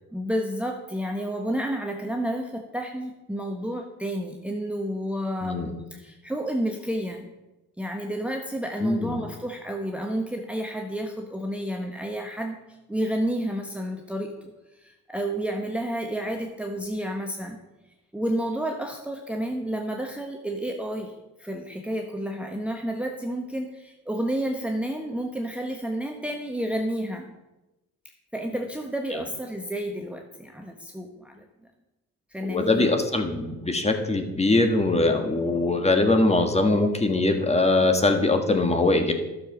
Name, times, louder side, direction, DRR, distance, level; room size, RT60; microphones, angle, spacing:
voice 1, 0.1-7.3 7.8-12.6 12.9-17.6 18.1-27.3 28.3-31.4 32.3-33.0, right 1 dB, 5° right, 3 dB, 1.0 m, -30 dB
voice 2, 8.8-9.2 32.4-39.1, left 2 dB, 20° left, 5 dB, 1.7 m, -22 dB
11.5 x 6.8 x 6.2 m, 1.0 s
cardioid pair, 90°, 30 cm